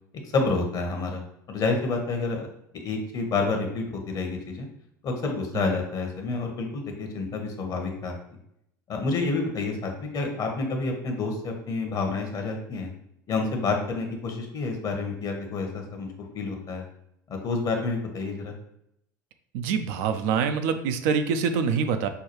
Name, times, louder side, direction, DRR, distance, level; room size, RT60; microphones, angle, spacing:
voice 1, 0.3-1.2 1.5-2.5 2.7-4.7 5.0-8.1 8.9-12.9 13.3-16.1 16.3-16.8 17.3-18.5, left 3 dB, 40° left, 3 dB, 0.9 m, -29 dB
voice 2, 19.5-22.1, right 6 dB, 55° right, 8 dB, 0.4 m, -25 dB
5.6 x 2.3 x 3.0 m, 0.76 s
figure-of-eight pair, 75°, 10 cm